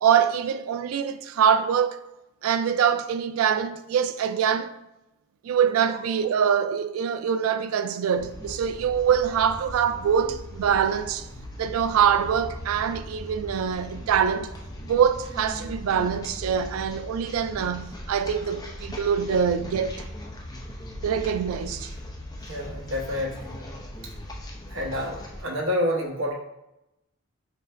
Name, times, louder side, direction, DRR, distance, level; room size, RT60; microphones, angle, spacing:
voice 1, 0.0-2.0 2.4-4.7 5.4-11.3 11.6-14.5 14.8-20.0 21.0-21.9, right 7 dB, 85° right, 0.3 m, -24 dB
sound 1, 8.2-25.4, left 1 dB, 20° left, 0.5 m, -39 dB
voice 2, 22.5-23.5 24.7-26.3, left 1 dB, 65° right, 0.9 m, -28 dB
4.4 x 2.5 x 3.2 m
head